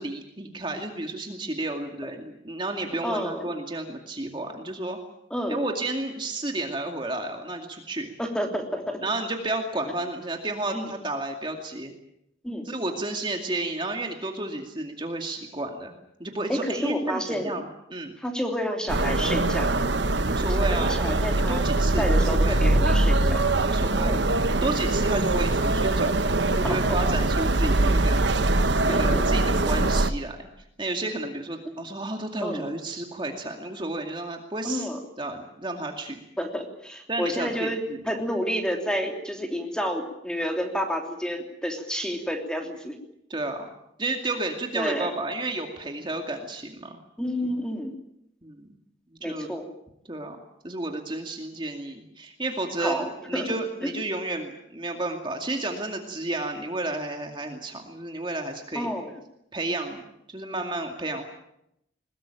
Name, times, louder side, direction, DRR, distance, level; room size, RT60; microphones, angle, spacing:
voice 1, 0.0-5.0 5.5-8.1 9.0-11.9 12.6-15.9 16.2-18.1 20.2-21.0 21.5-22.6 23.6-24.2 24.6-26.2 26.5-28.2 28.8-30.4 30.8-34.9 35.2-36.2 37.1-38.1 43.3-43.7 44.0-47.0 48.4-48.7 49.1-49.5 50.1-50.4 50.6-58.9 59.5-60.0 60.3-61.2, right 2 dB, 25° right, 3 dB, 2.3 m, -31 dB
voice 2, 3.0-3.4 5.3-5.6 8.2-9.0 10.7-10.9 12.4-12.7 16.5-17.6 18.2-19.7 20.4-21.6 22.0-23.4 24.0-24.2 26.6-26.8 28.9-29.2 32.4-32.6 34.6-35.0 36.4-42.9 44.7-45.1 47.2-47.9 49.2-49.6 52.8-53.5 53.8-53.9 58.7-59.1, equal, 5° left, 3 dB, 3.2 m, -30 dB
sound 1, 18.9-30.1, right 2 dB, 70° right, 1.2 m, -22 dB
22.0 x 21.0 x 9.0 m, 0.80 s
head